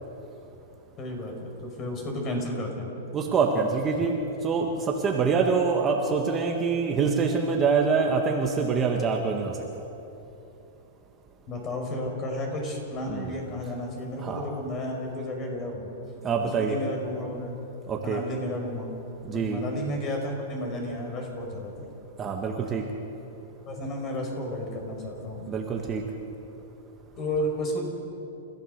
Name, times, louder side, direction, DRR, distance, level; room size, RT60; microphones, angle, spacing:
voice 1, 1.0-2.9 11.5-15.9 16.4-17.6 18.0-21.9 23.7-25.4 27.2-27.8, left 1 dB, 25° left, 2 dB, 5.5 m, -32 dB
voice 2, 3.1-4.1 4.4-9.5 13.1-13.3 14.2-14.4 16.2-16.8 17.9-18.2 19.3-19.6 22.2-22.8 25.5-26.0, right 5 dB, 20° right, 1 dB, 1.7 m, -25 dB
30.0 x 15.0 x 6.8 m, 2.9 s
hypercardioid pair, 150°, 0 cm